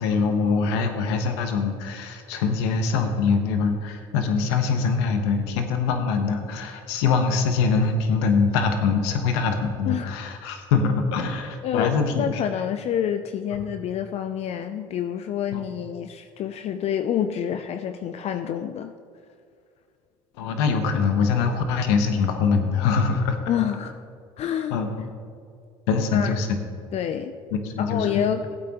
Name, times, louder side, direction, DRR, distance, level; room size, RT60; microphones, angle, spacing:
voice 1, 0.0-12.4 15.5-15.6 20.4-23.4 24.7-24.9 25.9-26.6 27.5-28.2, left 5 dB, 85° left, 6 dB, 1.1 m, -23 dB
voice 2, 11.6-18.9 23.5-24.0 24.4-24.7 26.1-26.4 26.9-27.3 27.8-28.5, left 9 dB, 50° left, 8 dB, 0.5 m, -27 dB
15.5 x 8.5 x 3.0 m, 2.3 s
supercardioid pair, 85°, 14 cm